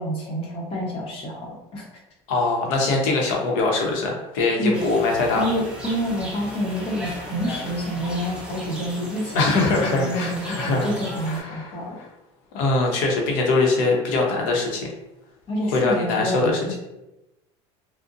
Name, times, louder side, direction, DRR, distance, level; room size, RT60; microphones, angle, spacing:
voice 1, 0.0-1.8 4.6-4.8 5.4-12.0 15.5-16.8, equal, 45° left, -3 dB, 0.8 m, -28 dB
voice 2, 2.3-5.4 9.3-10.9 11.3-11.8 12.5-14.9 15.7-16.6, left 3 dB, 70° left, 0 dB, 0.7 m, -22 dB
sound 1, 4.7-11.4, equal, 5° right, 0.7 m, -36 dB
2.5 x 2.0 x 2.6 m, 0.94 s
supercardioid pair, 115°, 14 cm